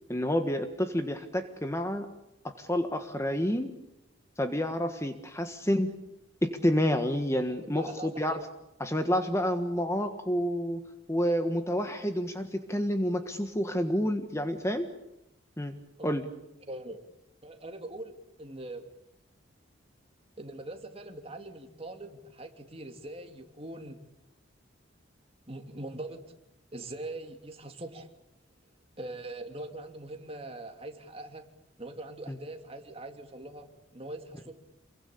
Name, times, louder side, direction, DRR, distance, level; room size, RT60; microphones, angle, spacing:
voice 1, 0.1-2.1 2.4-3.7 4.4-5.9 6.4-8.4 8.8-10.8 11.1-14.9 15.6-15.7 16.0-16.3 32.3-32.4, equal, 15° left, 7 dB, 1.5 m, -29 dB
voice 2, 7.6-8.5 16.0-16.1 16.6-17.0 17.4-18.1 18.4-18.9 20.4-24.0 25.5-26.2 26.7-28.1 29.0-31.5 31.8-34.6, right 2 dB, 30° right, 5 dB, 2.9 m, -42 dB
28.0 x 23.0 x 8.6 m, 0.85 s
head